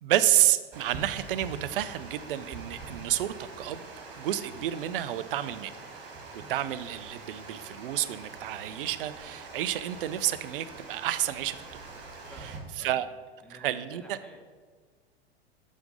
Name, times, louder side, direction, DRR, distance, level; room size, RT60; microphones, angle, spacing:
voice 1, 0.0-3.8 4.2-5.7 6.3-11.6 12.8-13.1 13.5-14.2, right 12 dB, 60° right, 13 dB, 0.5 m, -29 dB
Water, 0.7-12.6, right 3 dB, 35° right, 2.1 m, -44 dB
voice 2, 12.2-13.1 13.4-14.4, equal, 5° left, 0 dB, 1.2 m, -51 dB
6.1 x 5.8 x 5.2 m, 1.5 s
figure-of-eight pair, 95°, 32 cm